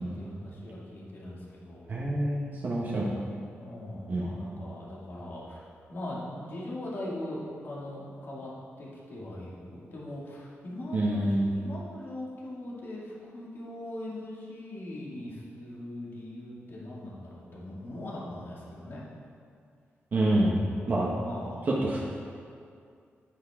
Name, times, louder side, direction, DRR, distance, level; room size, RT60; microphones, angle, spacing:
voice 1, 0.0-1.9 3.6-5.6 5.9-8.5 8.8-11.2 11.5-19.0 20.8-21.7, left 1 dB, 50° left, -5 dB, 2.2 m, -40 dB
voice 2, 1.9-3.2 4.1-4.3 10.9-11.5 20.1-21.1 21.8-22.0, right 1 dB, 45° right, -5 dB, 1.1 m, -27 dB
9.4 x 9.3 x 3.6 m, 2.3 s
wide cardioid pair, 155°, 5 cm